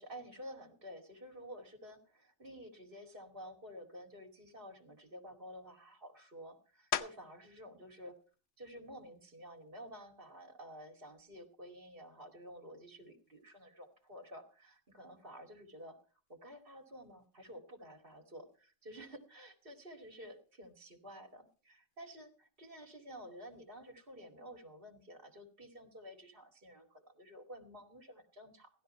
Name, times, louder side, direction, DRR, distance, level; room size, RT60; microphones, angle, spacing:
voice 1, 0.0-8.2 8.6-16.0 16.3-28.7, equal, 50° right, 3 dB, 2.6 m, -51 dB
sound 1, 6.9-7.5 8.1-12.5 13.0-18.2 18.5-24.1, left 9 dB, 90° left, 1.2 m, -48 dB
16.0 x 12.0 x 4.3 m, 0.39 s
omnidirectional pair, 1.2 m